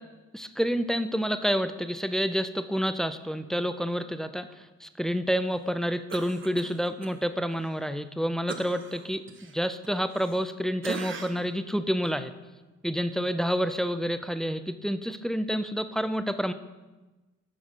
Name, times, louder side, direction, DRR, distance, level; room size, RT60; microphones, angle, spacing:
voice 1, 0.3-12.3 12.8-16.5, equal, ahead, 11 dB, 0.3 m, -29 dB
Cough, 6.1-7.1 7.5-7.7 8.5-10.5 10.8-11.5 12.0-12.2, right 4 dB, 40° right, 0.9 m, -40 dB
8.1 x 5.9 x 4.9 m, 1.2 s
cardioid pair, 90°, 30 cm